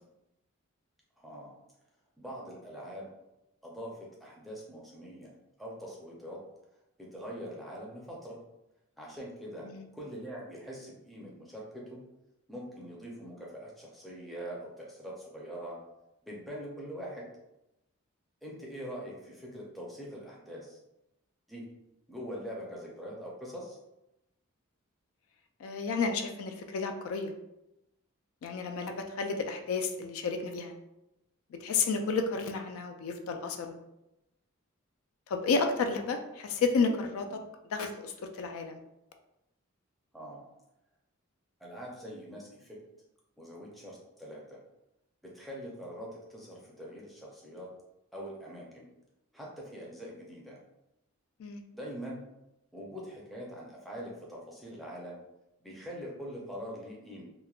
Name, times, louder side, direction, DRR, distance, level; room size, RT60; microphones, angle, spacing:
voice 1, 1.2-1.5 2.2-3.1 3.6-5.3 5.6-6.4 7.0-8.4 9.0-9.7 9.9-12.0 12.5-15.8 16.2-17.3 18.4-20.8 21.5-21.7 22.1-23.8 37.3-37.4 40.1-40.4 41.6-42.8 43.4-44.6 45.3-47.7 48.1-48.9 49.3-50.6 51.7-52.2 52.7-55.2 55.6-57.2, equal, ahead, -4 dB, 0.5 m, -43 dB
voice 2, 25.6-27.3 28.4-30.7 31.6-33.7 35.3-37.4 37.7-38.8 51.4-51.6, left 4 dB, 75° left, 5 dB, 0.3 m, -31 dB
3.0 x 2.1 x 2.3 m, 0.90 s
head